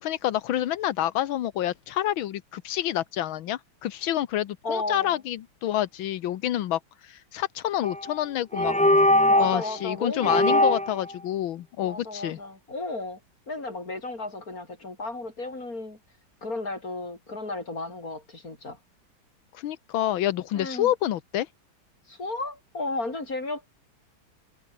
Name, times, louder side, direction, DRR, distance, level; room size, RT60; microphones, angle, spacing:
voice 1, 0.0-8.7 9.4-12.4 19.5-21.5, left 12 dB, 85° left, 1.7 m, -28 dB
voice 2, 4.6-5.2 9.3-10.8 11.8-13.2 13.5-16.0 16.4-18.8 20.5-20.9 22.1-23.7, left 2 dB, 45° left, 6.0 m, -34 dB
sound 1, 7.8-8.1 8.5-9.6 10.2-11.0, left 1 dB, 10° left, 0.3 m, -21 dB
omnidirectional pair, 2.2 m